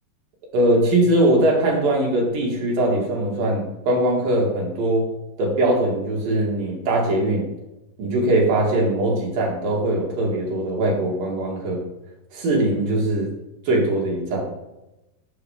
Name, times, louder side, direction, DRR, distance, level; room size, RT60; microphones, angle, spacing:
voice 1, 0.5-5.1 5.4-7.5 8.0-11.8 12.3-13.3 13.6-14.5, right 1 dB, 65° right, -2 dB, 3.2 m, -21 dB
6.9 x 6.6 x 4.9 m, 0.95 s
omnidirectional pair, 4.4 m